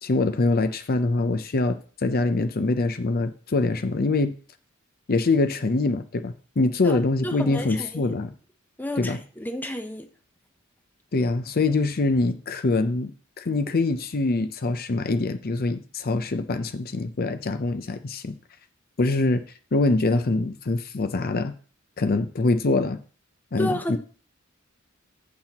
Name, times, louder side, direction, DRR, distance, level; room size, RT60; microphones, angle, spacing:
voice 1, 0.0-4.3 5.1-8.3 9.0-9.2 11.1-13.1 13.4-18.4 19.0-19.4 19.7-21.5 22.0-23.0 23.5-24.0, left 2 dB, 45° left, 0.6 m, -24 dB
voice 2, 7.2-8.1 8.8-10.0 23.6-24.0, left 1 dB, 10° left, 0.7 m, -31 dB
14.5 x 6.0 x 2.9 m
head